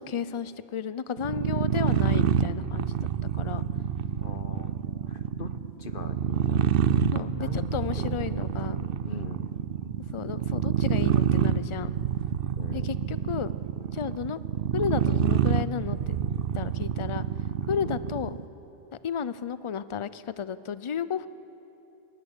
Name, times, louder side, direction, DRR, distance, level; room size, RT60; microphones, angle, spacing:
voice 1, 0.0-3.0 3.3-3.6 7.0-8.9 10.1-12.0 12.7-13.5 13.9-14.4 14.7-16.1 16.5-17.2 17.7-18.4 19.0-21.3, left 7 dB, 40° left, 15 dB, 0.5 m, -32 dB
sound 1, 1.2-18.4, right 9 dB, 65° right, 0.8 m, -27 dB
voice 2, 4.2-4.8 5.1-7.1 7.4-8.2 9.1-9.6 12.6-12.9 17.8-18.0, left 4 dB, 60° left, 9 dB, 1.2 m, -42 dB
21.5 x 15.5 x 9.8 m, 2.8 s
omnidirectional pair, 1.0 m